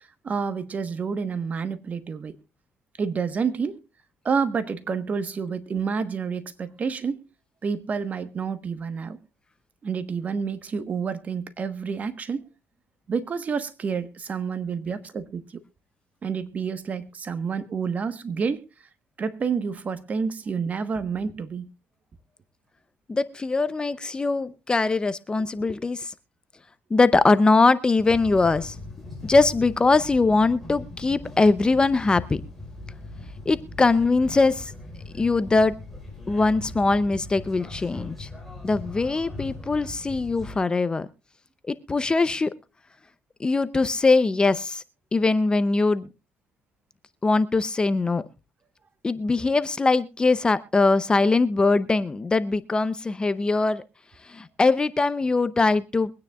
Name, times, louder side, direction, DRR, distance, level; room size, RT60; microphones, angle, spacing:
voice 1, 0.0-2.3 3.0-3.7 4.2-7.2 7.6-9.2 9.8-12.5 13.1-15.6 16.2-18.6 19.2-21.7, right 5 dB, 40° right, 1.2 m, -29 dB
voice 2, 23.1-26.1 26.9-28.8 29.2-32.4 33.5-34.7 35.2-35.7 36.3-38.3 38.6-41.1 41.7-42.5 43.4-44.8 45.1-46.1 47.2-48.2 49.0-53.8 54.2-56.1, left 3 dB, 20° left, 0.6 m, -22 dB
sound 1, 28.0-40.6, left 2 dB, 5° left, 4.6 m, -40 dB
23.5 x 9.6 x 2.4 m
cardioid pair, 105°, 4 cm